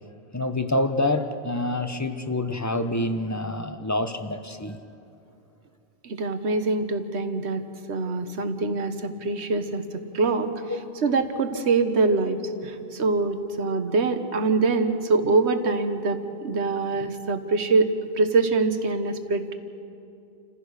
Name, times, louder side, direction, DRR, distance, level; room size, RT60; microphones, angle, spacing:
voice 1, 0.3-4.8, left 1 dB, 15° left, 9 dB, 0.8 m, -27 dB
voice 2, 6.0-9.8 10.1-10.5 11.0-12.4 12.6-17.9 18.2-19.5, right 3 dB, 70° right, 9 dB, 1.4 m, -24 dB
28.5 x 15.5 x 6.5 m, 2.6 s
omnidirectional pair, 1.2 m